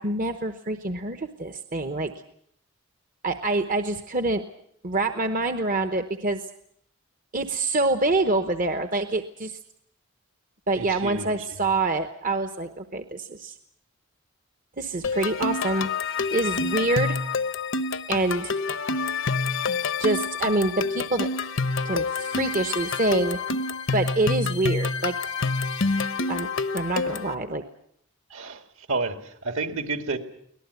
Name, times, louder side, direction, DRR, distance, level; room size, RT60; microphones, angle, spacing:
voice 1, 0.0-2.1 3.2-4.4 4.8-6.4 7.3-9.6 10.7-13.5 14.8-15.9 16.3-17.2 18.1-18.5 20.0-21.3 21.8-23.4 23.9-25.1 26.3-26.5 26.7-27.6, right 2 dB, 35° right, 8 dB, 1.0 m, -26 dB
voice 2, 10.8-11.7 28.3-30.2, right 3 dB, 65° right, 7 dB, 2.2 m, -31 dB
sound 1, 15.0-27.3, left 4 dB, 55° left, 0.9 m, -27 dB
24.5 x 18.0 x 8.2 m, 0.70 s
head